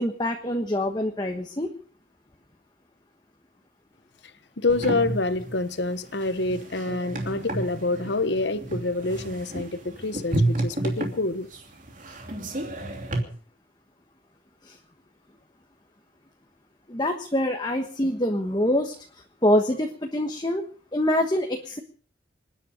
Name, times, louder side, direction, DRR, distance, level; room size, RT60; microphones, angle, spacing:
voice 1, 0.0-1.7 14.6-14.7 16.9-18.9 19.4-20.6 20.9-21.8, left 1 dB, 20° left, 1.3 m, -25 dB
voice 2, 4.6-11.5, left 2 dB, 65° left, 1.0 m, -27 dB
sound 1, 4.7-13.2, right 1 dB, 45° right, 2.9 m, -31 dB
27.0 x 10.0 x 5.1 m
head